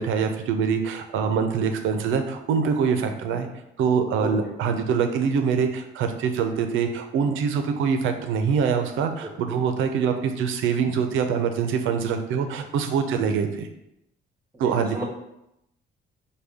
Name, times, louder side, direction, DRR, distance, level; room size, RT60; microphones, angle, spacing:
voice 1, 0.0-3.5 3.8-13.7 14.6-15.0, right 6 dB, 90° right, 6 dB, 0.5 m, -24 dB
voice 2, 14.5-15.0, right 2 dB, 10° right, -5 dB, 0.8 m, -34 dB
5.0 x 2.3 x 3.4 m, 0.84 s
cardioid pair, 90°, 20 cm